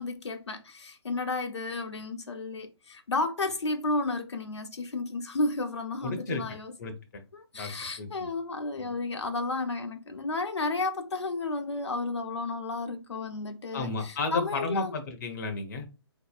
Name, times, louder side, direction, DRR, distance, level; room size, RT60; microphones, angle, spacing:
voice 1, 0.0-6.7 7.3-14.9, left 3 dB, 80° left, 0.7 m, -32 dB
voice 2, 6.0-6.4 6.8-7.2 7.5-7.7 8.0-8.3 13.7-15.9, left 3 dB, 40° left, 0.7 m, -33 dB
4.0 x 2.7 x 2.3 m
figure-of-eight pair, 140°, 14 cm